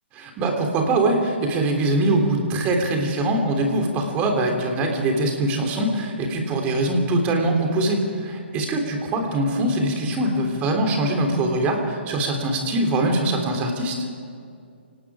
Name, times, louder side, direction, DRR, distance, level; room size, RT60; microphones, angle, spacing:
voice 1, 0.2-14.1, right 1 dB, 25° right, 3 dB, 3.5 m, -23 dB
29.0 x 19.0 x 5.0 m, 2.3 s
hypercardioid pair, 140°, 6 cm